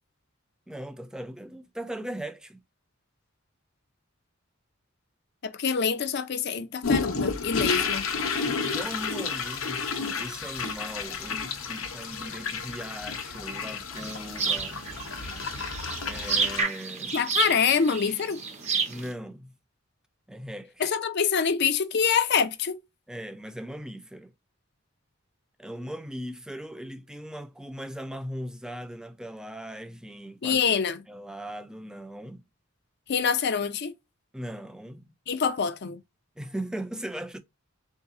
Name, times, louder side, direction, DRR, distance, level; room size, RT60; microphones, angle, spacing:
voice 1, 0.7-2.6 8.6-14.8 16.0-17.2 18.9-19.5 20.3-20.9 23.1-24.3 25.6-30.6 31.1-32.4 34.3-35.1 36.4-37.4, equal, 5° right, 0.3 m, -39 dB
voice 2, 5.4-8.1 17.1-18.4 20.8-22.8 30.4-31.0 33.1-33.9 35.3-36.0, left 6 dB, 55° left, 0.5 m, -25 dB
sound 1, 6.8-16.6, left 5 dB, 80° left, 0.8 m, -31 dB
sound 2, 14.0-19.1, right 5 dB, 35° right, 0.8 m, -30 dB
3.8 x 2.8 x 3.5 m
head